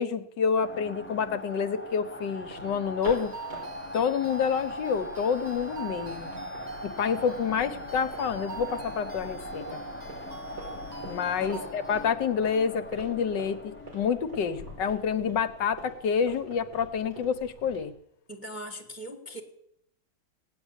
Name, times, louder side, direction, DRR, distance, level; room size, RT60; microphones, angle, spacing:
voice 1, 0.0-3.3 3.9-6.3 6.8-9.8 11.0-17.9, left 6 dB, 70° left, 11 dB, 1.5 m, -28 dB
sound 1, 0.6-16.4, left 1 dB, 10° left, 0.6 m, -41 dB
sound 2, 2.3-17.9, equal, 65° right, 6.4 m, -46 dB
sound 3, 3.0-12.1, right 5 dB, 25° right, 1.0 m, -47 dB
voice 2, 11.4-11.7 12.8-12.9 18.3-19.4, right 1 dB, 5° right, 3 dB, 1.8 m, -41 dB
17.5 x 10.0 x 8.0 m, 0.76 s
omnidirectional pair, 2.0 m